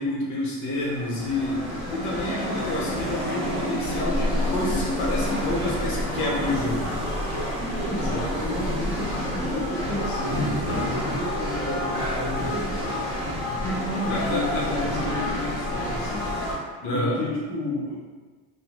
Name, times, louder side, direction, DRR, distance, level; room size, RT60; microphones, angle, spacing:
voice 1, 0.0-1.6 1.9-6.9 13.5-14.8 16.8-17.2, left 1 dB, 40° left, -4 dB, 0.8 m, -29 dB
sound 1, 0.8-16.5, left 1 dB, 10° right, 1.1 m, -28 dB
voice 2, 7.8-13.1 13.8-16.3 16.9-18.0, left 2 dB, 15° left, -9 dB, 0.5 m, -33 dB
3.6 x 2.1 x 2.9 m, 1.4 s
cardioid pair, 160°, 43 cm